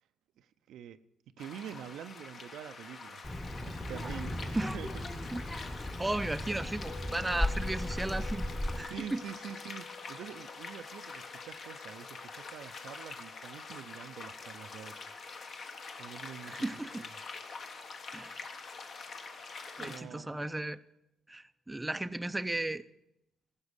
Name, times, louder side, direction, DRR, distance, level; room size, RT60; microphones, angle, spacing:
voice 1, 0.4-1.0 1.4-3.2 3.6-4.9 8.9-15.0 16.0-16.7 17.0-17.1 19.8-20.4, right 9 dB, 80° right, 11 dB, 0.5 m, -46 dB
sound 1, 1.4-20.0, left 4 dB, 55° left, 1.3 m, -45 dB
Child speech kid speaking, 3.2-8.9, left 1 dB, 15° left, 1.0 m, -36 dB
voice 2, 6.0-8.5 8.8-9.2 16.4-17.0 18.1-18.4 19.8-20.8 21.3-22.8, right 2 dB, 10° right, 11 dB, 0.5 m, -35 dB
sound 2, 6.9-16.9, left 7 dB, 85° left, 0.6 m, -54 dB
15.0 x 6.2 x 8.1 m, 0.83 s
cardioid pair, 90°, 0 cm